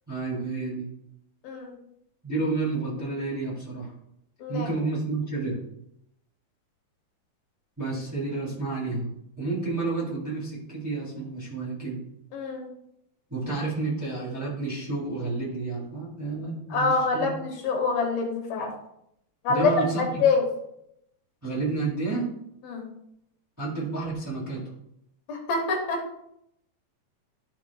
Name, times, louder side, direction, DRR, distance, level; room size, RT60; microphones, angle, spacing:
voice 1, 0.1-0.9 2.2-3.9 4.5-5.6 7.8-9.1 9.4-12.0 13.3-17.3 19.5-20.2 21.4-22.3 23.6-24.6, right 3 dB, 5° right, -6 dB, 2.4 m, -30 dB
voice 2, 1.4-1.7 4.4-4.7 12.3-12.7 16.7-18.7 19.4-19.7 20.0-20.4 22.6-22.9 25.3-26.0, left 4 dB, 75° left, 1 dB, 2.9 m, -25 dB
13.0 x 5.9 x 2.3 m, 0.76 s
omnidirectional pair, 4.4 m